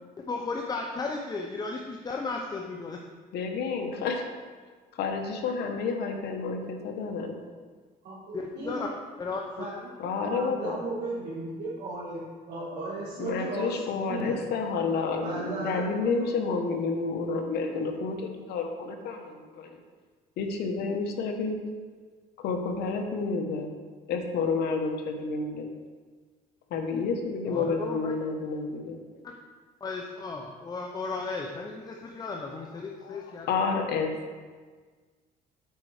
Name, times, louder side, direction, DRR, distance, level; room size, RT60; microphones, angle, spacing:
voice 1, 0.3-3.0 8.3-8.9 9.2-9.6 27.5-28.1 29.8-33.6, left 3 dB, 25° left, 1 dB, 0.7 m, -35 dB
voice 2, 3.3-4.3 5.0-7.4 10.0-10.8 13.2-19.8 20.4-21.6 22.4-23.7 24.1-25.7 26.7-29.0 33.0-34.1, left 4 dB, 75° left, 4 dB, 1.1 m, -30 dB
voice 3, 8.0-8.9 9.6-14.4 15.2-16.3 16.7-16.8, right 2 dB, 70° right, -8 dB, 1.8 m, -36 dB
8.3 x 4.5 x 4.9 m, 1.5 s
cardioid pair, 110°, 17 cm